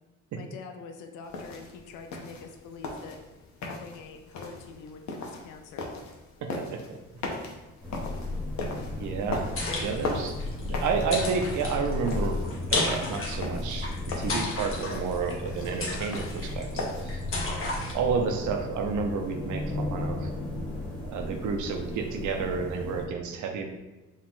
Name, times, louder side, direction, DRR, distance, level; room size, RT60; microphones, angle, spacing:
voice 1, 0.3-3.2 3.6-5.9, left 5 dB, 85° left, 5 dB, 0.5 m, -45 dB
sound 1, 1.2-17.2, left 3 dB, 65° left, 0.8 m, -39 dB
voice 2, 6.4-7.0 9.0-10.4 10.6-12.4 12.7-17.2 17.9-20.3 21.0-23.7, right 5 dB, 75° right, 4 dB, 0.7 m, -31 dB
sound 2, 7.8-23.1, left 2 dB, 5° left, 1.2 m, -35 dB
sound 3, 9.3-17.9, left 2 dB, 45° left, 1.2 m, -34 dB
5.3 x 2.5 x 3.6 m, 1.1 s
cardioid pair, 90°, 30 cm